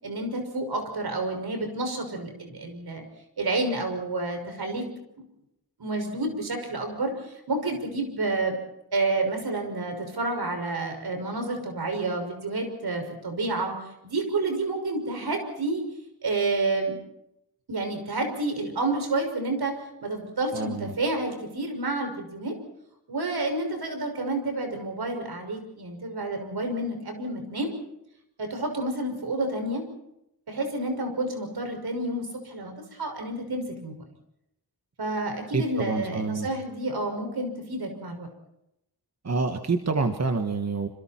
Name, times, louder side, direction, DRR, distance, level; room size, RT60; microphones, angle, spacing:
voice 1, 0.0-3.0 3.4-4.8 5.8-8.5 8.9-13.7 14.0-15.8 16.2-17.0 17.7-22.5 23.1-27.7 28.4-29.8 30.5-34.0 35.0-38.3, right 2 dB, 75° right, 5 dB, 6.1 m, -29 dB
voice 2, 20.5-20.9 35.5-36.5 39.2-40.9, right 4 dB, 40° right, 5 dB, 1.5 m, -27 dB
27.5 x 27.0 x 4.5 m, 0.83 s
wide cardioid pair, 135°, 39 cm